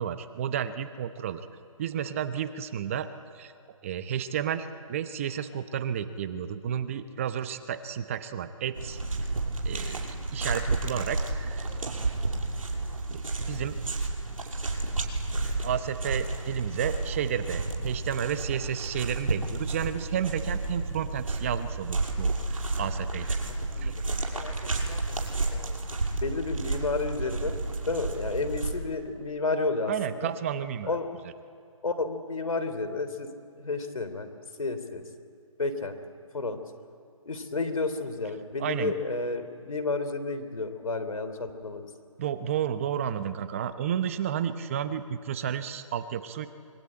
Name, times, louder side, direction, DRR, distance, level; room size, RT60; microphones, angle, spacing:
voice 1, 0.0-1.4 1.8-3.1 3.3-3.5 3.8-9.0 9.6-11.7 13.1-13.8 15.6-23.4 23.8-24.2 29.9-31.0 38.6-38.9 42.2-46.5, right 9 dB, 25° right, 11 dB, 0.8 m, -32 dB
sound 1, 8.7-28.7, right 3 dB, 70° right, 5.9 m, -31 dB
voice 2, 23.5-23.9 24.3-25.1 25.5-25.8 26.2-27.6 27.9-30.3 30.8-31.1 31.8-34.3 34.6-35.0 35.6-35.9 36.3-36.6 37.2-41.9, left 3 dB, 75° left, 9 dB, 3.2 m, -31 dB
25.0 x 22.5 x 8.7 m, 2.3 s
figure-of-eight pair, 155°, 18 cm